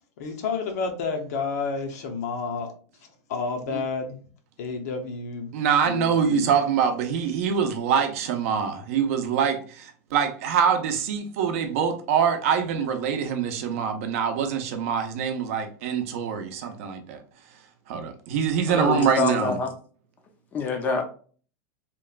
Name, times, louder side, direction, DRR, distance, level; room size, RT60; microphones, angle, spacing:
voice 1, 0.2-2.7 3.3-4.2 4.6-5.5 5.8-6.5, left 4 dB, 70° left, 0.6 m, -30 dB
voice 2, 5.5-17.2 17.9-19.6, right 7 dB, 55° right, 0.5 m, -24 dB
voice 3, 18.7-19.7 20.5-21.0, left 4 dB, 20° left, 0.4 m, -26 dB
2.9 x 2.2 x 2.3 m
supercardioid pair, 170°, 9 cm